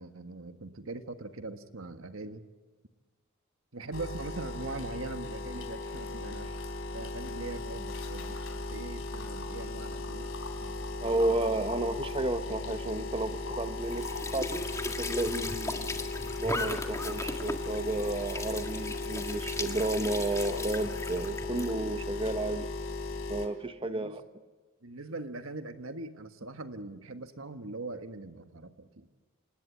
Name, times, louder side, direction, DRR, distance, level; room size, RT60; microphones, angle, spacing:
voice 1, 0.0-2.4 3.7-6.6 6.9-8.4 8.7-10.3 10.6-10.9 23.8-24.2 24.8-29.1, right 2 dB, 75° right, 8 dB, 1.6 m, -41 dB
sound 1, 3.9-23.5, left 3 dB, 70° left, 3.5 m, -37 dB
voice 2, 11.0-16.0 16.4-22.7 23.3-24.2, right 2 dB, 25° right, 9 dB, 0.9 m, -32 dB
Squeak / Sink (filling or washing) / Trickle dribble, 13.8-21.7, left 2 dB, 15° left, 1.7 m, -38 dB
27.0 x 19.5 x 8.7 m, 1.3 s
head